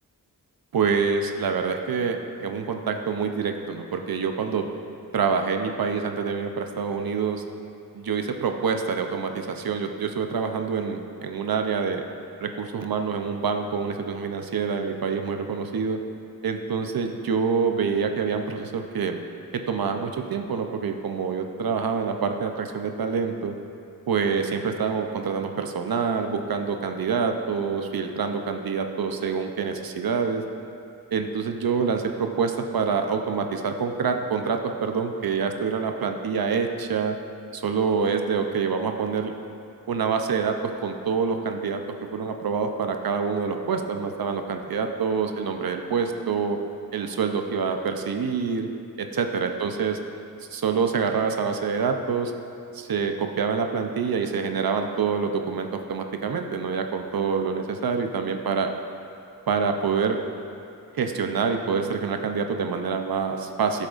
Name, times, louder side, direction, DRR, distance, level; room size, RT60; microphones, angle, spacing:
voice 1, 0.7-4.7 5.1-7.4 7.9-12.0 12.4-16.0 16.4-19.2 19.5-23.6 24.1-30.4 31.1-37.2 37.5-39.3 39.9-41.8 42.1-46.6 46.9-48.7 49.0-50.0 50.5-52.3 52.7-58.7 59.5-60.2 61.0-63.9, right 5 dB, 70° right, 5 dB, 0.7 m, -26 dB
14.0 x 7.4 x 2.5 m, 2.7 s
wide cardioid pair, 110°, 36 cm